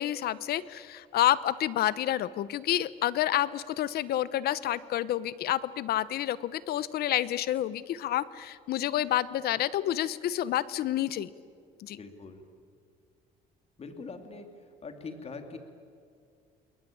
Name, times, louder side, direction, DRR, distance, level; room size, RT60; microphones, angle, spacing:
voice 1, 0.0-11.3 11.8-12.0, left 12 dB, 65° left, 17 dB, 1.0 m, -29 dB
voice 2, 11.9-12.4 13.8-14.5 14.8-15.6, left 4 dB, 35° left, 6 dB, 3.0 m, -42 dB
29.5 x 21.5 x 8.8 m, 2.3 s
cardioid pair, 110°, 17 cm